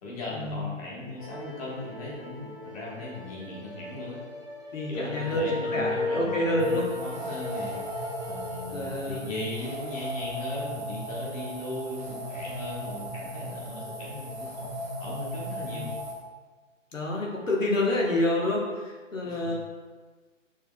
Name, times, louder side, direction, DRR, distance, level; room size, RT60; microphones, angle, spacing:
voice 1, 0.0-4.2 4.9-15.9 19.2-19.5, left 2 dB, 30° left, -5 dB, 1.3 m, -38 dB
sound 1, 1.2-8.6, left 2 dB, ahead, 0.8 m, -36 dB
voice 2, 4.7-6.8 8.7-9.3 15.7-15.9 16.9-18.6 19.1-19.5, left 1 dB, 80° left, -2 dB, 1.3 m, -28 dB
sound 2, 6.6-16.1, equal, 35° right, 1.1 m, -37 dB
6.2 x 3.4 x 2.3 m, 1.3 s
figure-of-eight pair, 130°, 39 cm